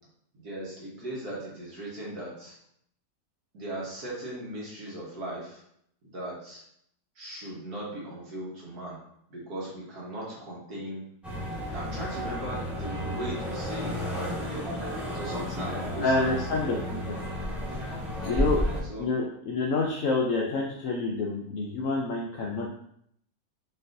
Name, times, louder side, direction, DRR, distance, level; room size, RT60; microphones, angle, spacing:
voice 1, 0.4-2.6 3.5-5.6 6.0-6.6 7.2-9.0 9.3-11.0 11.7-14.6 15.1-16.4 18.2-19.1, right 1 dB, 75° right, -5 dB, 1.8 m, -38 dB
sound 1, 11.2-18.8, equal, ahead, 1.2 m, -32 dB
voice 2, 16.0-17.1 18.2-18.6 19.0-22.7, left 3 dB, 65° left, -2 dB, 0.9 m, -28 dB
4.4 x 4.1 x 2.6 m, 0.70 s
omnidirectional pair, 1.7 m